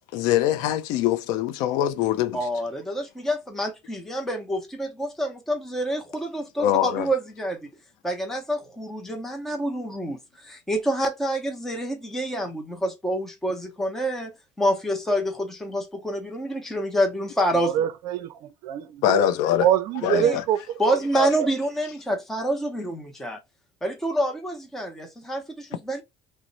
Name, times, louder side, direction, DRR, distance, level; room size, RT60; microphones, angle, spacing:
voice 1, 0.1-2.4 6.6-7.1 19.0-19.7 20.0-20.4, left 12 dB, 70° left, 0.4 m, -23 dB
voice 2, 2.3-7.6 8.0-17.9 20.1-20.4 20.8-23.4 23.8-26.0, equal, 5° left, 0.6 m, -27 dB
voice 3, 17.5-19.3 19.6-21.5, right 11 dB, 55° right, 0.5 m, -25 dB
3.0 x 2.0 x 3.8 m
cardioid pair, 150°, 7 cm